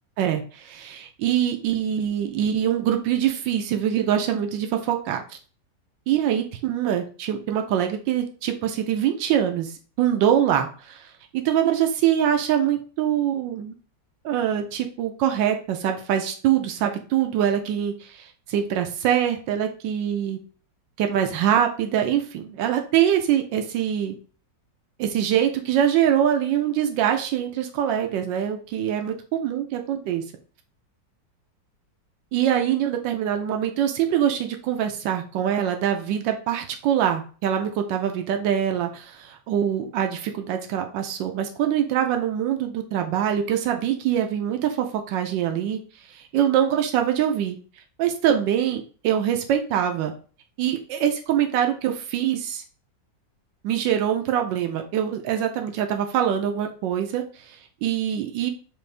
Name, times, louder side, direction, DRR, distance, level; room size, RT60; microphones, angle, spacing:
voice 1, 0.2-5.4 6.1-11.1 11.3-13.7 14.2-20.4 21.0-24.2 25.0-30.2 32.3-45.8 46.1-47.6 48.0-50.1 50.6-52.6 53.6-58.5, right 10 dB, 85° right, 5 dB, 1.3 m, -24 dB
6.4 x 2.6 x 3.2 m, 0.39 s
omnidirectional pair, 1.9 m